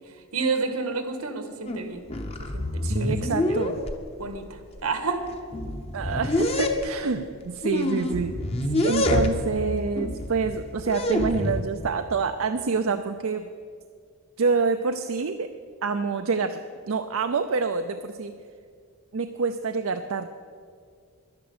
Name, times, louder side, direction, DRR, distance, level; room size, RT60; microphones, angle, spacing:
voice 1, 0.0-2.0 2.4-3.7 4.2-5.2 8.8-9.0, right 4 dB, 85° right, 7 dB, 1.6 m, -31 dB
sound 1, 1.7-1.8 2.1-4.0 4.8-4.9 5.3-6.9 7.6-9.6 10.0-11.6, left 1 dB, 25° left, 0.8 m, -26 dB
voice 2, 2.8-3.8 5.9-8.3 8.8-13.5 14.4-15.5 15.8-16.6 16.9-18.3 19.1-20.3, right 4 dB, 70° right, 7 dB, 0.5 m, -27 dB
11.5 x 10.5 x 7.8 m, 2.1 s
head